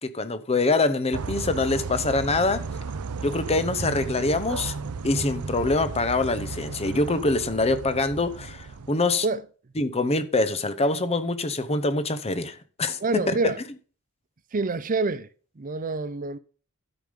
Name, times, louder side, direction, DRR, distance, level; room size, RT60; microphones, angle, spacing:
voice 1, 0.0-2.6 3.2-4.8 5.0-9.3 9.8-13.5, left 2 dB, 30° left, 0.9 m, -25 dB
sound 1, 1.1-8.9, right 4 dB, 90° right, 0.6 m, -34 dB
voice 2, 13.0-13.6 14.5-15.3 15.6-16.4, right 3 dB, 40° right, 0.6 m, -26 dB
12.5 x 5.2 x 5.3 m
head